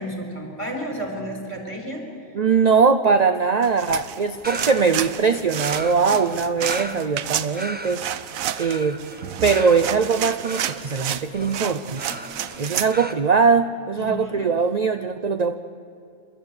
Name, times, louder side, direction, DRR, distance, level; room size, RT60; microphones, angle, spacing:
voice 1, 0.0-2.0 12.1-12.2 14.0-14.4, equal, 20° left, 2 dB, 4.4 m, -32 dB
voice 2, 2.3-8.0 8.6-9.0 9.4-12.0 12.6-15.5, right 5 dB, 45° right, 9 dB, 0.5 m, -21 dB
sound 1, 3.6-12.9, right 10 dB, 70° right, 1.1 m, -30 dB
sound 2, 4.4-13.1, right 1 dB, 10° right, 0.8 m, -37 dB
28.5 x 13.0 x 8.8 m, 2.6 s
omnidirectional pair, 1.6 m